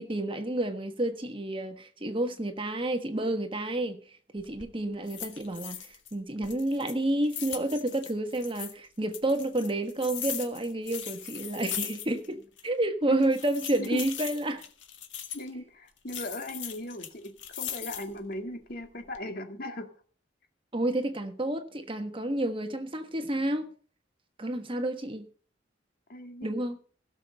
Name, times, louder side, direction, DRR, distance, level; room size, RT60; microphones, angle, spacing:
voice 1, 0.0-4.0 4.3-14.6 20.7-23.7 24.4-25.3 26.4-26.8, right 1 dB, 30° right, 1.3 m, -30 dB
sound 1, 4.4-4.7 5.1-6.1 6.4-8.7 9.1-12.3 12.6-12.7 13.2-15.5 16.1-18.2 18.7-19.2, left 10 dB, 70° left, 1.9 m, -39 dB
voice 2, 15.3-19.9 26.1-26.6, left 1 dB, 50° left, 2.2 m, -38 dB
17.0 x 7.2 x 6.5 m
head